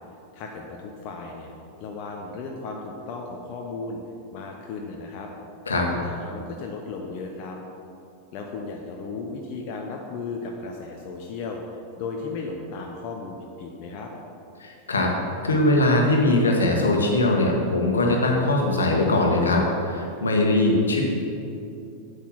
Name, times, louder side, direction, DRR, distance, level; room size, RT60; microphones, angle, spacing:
voice 1, 0.3-1.5 1.8-4.0 4.3-5.3 5.9-7.6 8.3-11.6 12.0-14.1, left 4 dB, 40° left, 1 dB, 0.9 m, -35 dB
voice 2, 14.6-15.1 15.4-19.6 19.9-21.0, left 2 dB, 70° left, 1 dB, 1.5 m, -21 dB
8.4 x 8.3 x 5.7 m, 2.7 s
figure-of-eight pair, 90°, 0 cm